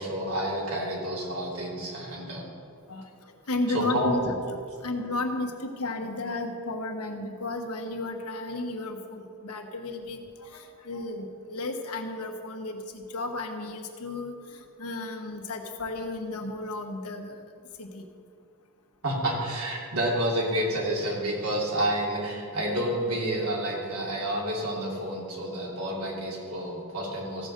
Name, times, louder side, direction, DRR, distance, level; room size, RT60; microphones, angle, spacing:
voice 1, 0.0-2.5 3.7-4.2 19.0-27.5, right 1 dB, 75° right, -3 dB, 2.8 m, -29 dB
voice 2, 2.9-17.4 17.8-18.1, left 2 dB, 80° left, 4 dB, 1.2 m, -33 dB
15.0 x 5.1 x 6.6 m, 2.3 s
head